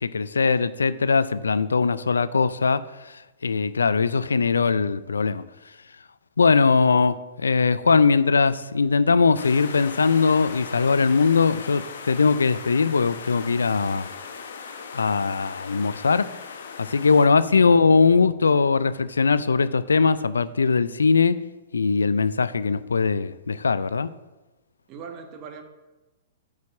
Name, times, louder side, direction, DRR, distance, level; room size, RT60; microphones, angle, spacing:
voice 1, 0.0-5.4 6.4-14.1 14.9-16.3 16.8-21.4 21.7-24.1, left 4 dB, 90° left, 0.4 m, -21 dB
sound 1, 9.3-17.3, left 5 dB, 70° left, 1.0 m, -38 dB
voice 2, 17.0-17.8 24.9-25.6, right 6 dB, 35° right, 1.4 m, -42 dB
8.3 x 4.9 x 7.1 m
hypercardioid pair, 120°, 0 cm